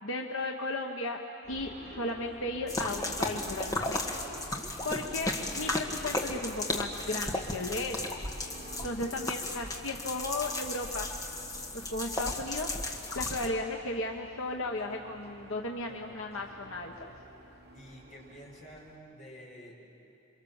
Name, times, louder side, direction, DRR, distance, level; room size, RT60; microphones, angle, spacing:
voice 1, 0.0-1.2 1.5-4.0 4.8-8.0 8.8-11.1 11.7-12.7 13.1-16.9, left 2 dB, 80° left, 2 dB, 1.3 m, -35 dB
sound 1, 1.4-19.0, right 1 dB, 50° right, 3.3 m, -50 dB
sound 2, 2.7-13.5, left 2 dB, 15° left, 1.5 m, -35 dB
voice 2, 15.9-16.4 17.7-19.7, equal, 40° left, -4 dB, 5.7 m, -50 dB
28.0 x 24.5 x 7.3 m, 2.9 s
head